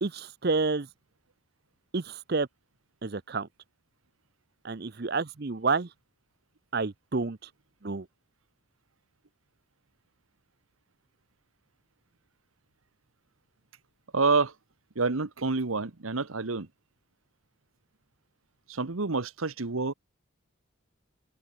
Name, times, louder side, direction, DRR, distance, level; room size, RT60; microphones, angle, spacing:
voice 1, 0.0-0.9 1.9-2.5 3.0-3.5 4.6-5.9 6.7-7.5 7.8-8.1, right 4 dB, 50° right, 0.7 m, -29 dB
voice 2, 14.1-14.5 14.9-16.7 18.7-19.9, right 4 dB, 85° right, 1.2 m, -28 dB
open air
head